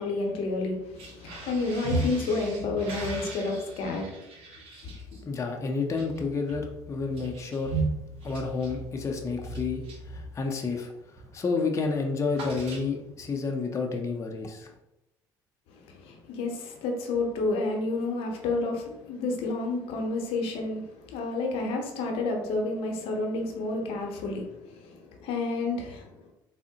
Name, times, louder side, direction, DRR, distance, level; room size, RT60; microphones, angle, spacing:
voice 1, 0.0-4.1 15.7-26.1, left 3 dB, 70° left, 2 dB, 0.7 m, -30 dB
sound 1, 0.8-10.8 11.1-11.4 11.7-13.3, right 2 dB, 65° right, 0.8 m, -37 dB
voice 2, 5.2-7.7 8.2-14.7, left 4 dB, 30° left, 2 dB, 0.5 m, -30 dB
3.5 x 2.0 x 2.7 m, 0.91 s
hypercardioid pair, 65°, 10 cm